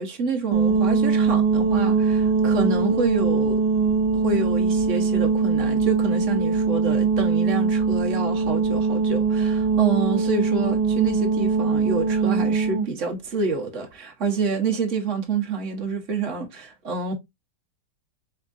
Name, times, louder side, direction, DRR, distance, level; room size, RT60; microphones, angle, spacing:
voice 1, 0.0-3.6 4.1-17.2, right 4 dB, 50° right, 1.2 m, -28 dB
sound 1, 0.5-12.9, right 4 dB, 80° right, 1.4 m, -21 dB
4.5 x 3.6 x 2.5 m
omnidirectional pair, 1.9 m